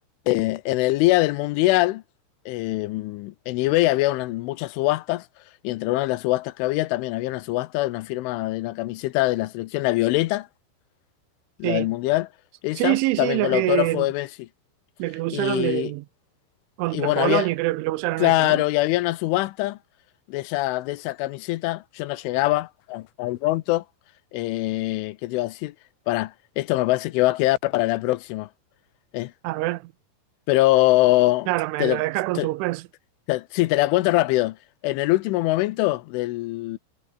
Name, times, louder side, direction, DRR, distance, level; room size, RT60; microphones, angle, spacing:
voice 1, 0.3-2.0 2.5-5.3 5.6-10.5 11.6-12.3 12.6-14.5 15.3-15.9 16.9-17.5 18.2-19.8 20.3-23.8 24.3-25.7 26.1-28.5 29.1-29.3 30.5-31.5 31.8-32.0 32.4-32.5 33.3-34.6 34.8-36.8, left 18 dB, 80° left, 3.2 m, -23 dB
voice 2, 12.8-14.1 15.0-16.0 16.8-18.6 29.4-29.9 31.5-32.8, right 19 dB, 80° right, 3.1 m, -25 dB
omnidirectional pair, 5.7 m